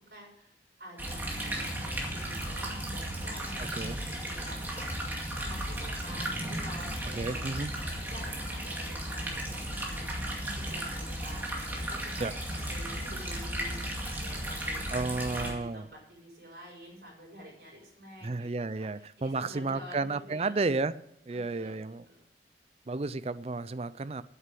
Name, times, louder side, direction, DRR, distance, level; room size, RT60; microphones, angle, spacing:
voice 1, 0.1-7.6 8.1-18.5 18.8-20.6 21.3-22.3, equal, 55° right, -1 dB, 6.2 m, -49 dB
sound 1, 1.0-15.5, right 1 dB, 10° right, 2.1 m, -35 dB
voice 2, 3.6-4.0 7.2-7.7 12.2-12.3 14.9-15.9 18.2-22.1 22.9-24.2, right 3 dB, 35° right, 15 dB, 0.4 m, -32 dB
9.5 x 8.3 x 7.6 m, 0.77 s
head